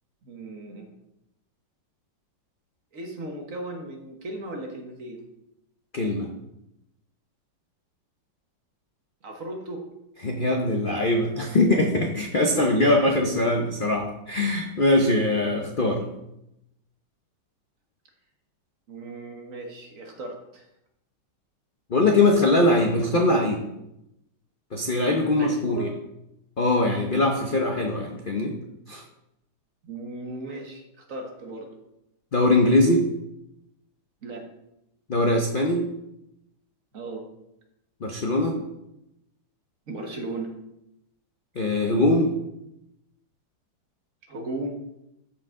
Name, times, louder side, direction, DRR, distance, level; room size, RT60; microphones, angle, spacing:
voice 1, 0.2-0.9 2.9-5.2 9.2-9.8 12.4-13.3 18.9-20.7 25.4-25.9 29.8-31.7 34.2-34.5 36.9-37.3 39.9-40.5 44.3-44.8, right 2 dB, 50° right, 2 dB, 1.5 m, -36 dB
voice 2, 5.9-6.3 10.2-16.0 21.9-23.6 24.7-25.9 26.6-28.6 28.9-29.0 32.3-33.1 35.1-35.9 38.0-38.6 41.6-42.3, left 2 dB, 50° left, 2 dB, 0.6 m, -22 dB
13.0 x 4.9 x 3.6 m, 0.85 s
omnidirectional pair, 2.0 m